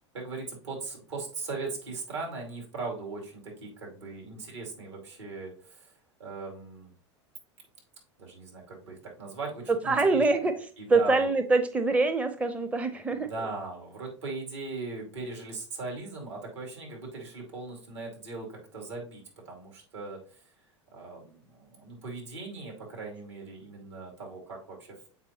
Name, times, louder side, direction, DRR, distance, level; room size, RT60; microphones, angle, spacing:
voice 1, 0.1-5.9 6.2-6.9 8.2-10.2 10.8-11.3 13.1-20.4 20.9-24.9, right 3 dB, 75° right, -1 dB, 2.5 m, -39 dB
voice 2, 9.8-10.5 10.9-13.5, right 3 dB, 10° right, 9 dB, 0.5 m, -25 dB
7.4 x 4.6 x 2.8 m, 0.41 s
figure-of-eight pair, 85°, 15 cm